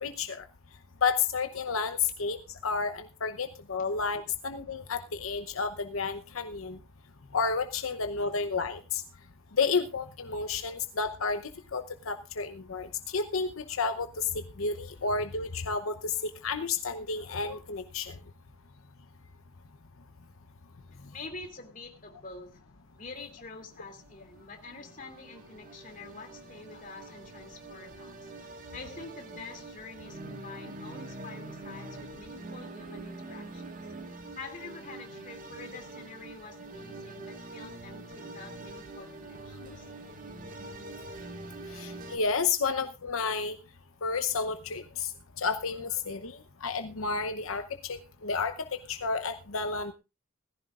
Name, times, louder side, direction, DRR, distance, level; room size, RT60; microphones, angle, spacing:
voice 1, 0.0-0.4 1.0-6.8 7.3-9.0 9.6-11.4 11.7-14.3 14.6-18.1 41.7-43.6 44.0-45.1 45.4-49.9, left 4 dB, 90° left, 8 dB, 0.9 m, -31 dB
voice 2, 20.9-22.7 22.9-28.3 28.7-33.9 34.3-39.9, left 3 dB, 40° left, 4 dB, 2.8 m, -46 dB
sound 1, 23.7-42.2, right 2 dB, 40° right, 1.7 m, -45 dB
17.5 x 15.0 x 2.5 m, 0.28 s
head